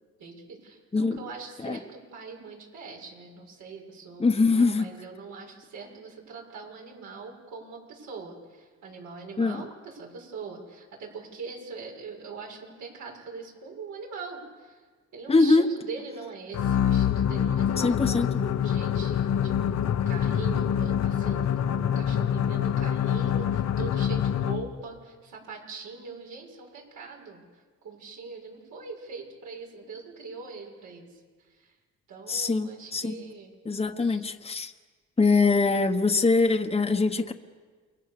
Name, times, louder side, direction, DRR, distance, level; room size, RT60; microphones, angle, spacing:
voice 1, 0.2-14.8 15.1-31.1 31.5-31.7 32.1-33.5 34.0-34.2, right 4 dB, 80° right, 0 dB, 6.7 m, -42 dB
voice 2, 4.2-4.9 9.4-9.6 15.3-15.7 17.8-18.3 32.3-33.2 33.6-34.7 35.2-37.3, left 3 dB, 20° left, 4 dB, 1.3 m, -23 dB
sound 1, 16.5-24.8, left 9 dB, 60° left, 1.3 m, -26 dB
29.0 x 21.5 x 6.9 m, 1.5 s
cardioid pair, 90°, 30 cm